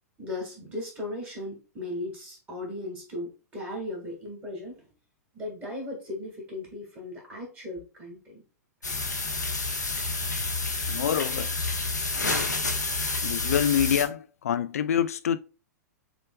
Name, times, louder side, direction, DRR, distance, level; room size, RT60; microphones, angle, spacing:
voice 1, 0.2-4.8 5.3-8.4, left 2 dB, 20° right, 1.9 m, -37 dB
sound 1, 8.8-14.0, left 3 dB, 80° left, 1.1 m, -29 dB
voice 2, 10.9-11.5 12.2-12.5 13.2-15.4, left 9 dB, 55° left, 0.4 m, -26 dB
6.8 x 3.3 x 2.3 m
figure-of-eight pair, 105°, 9 cm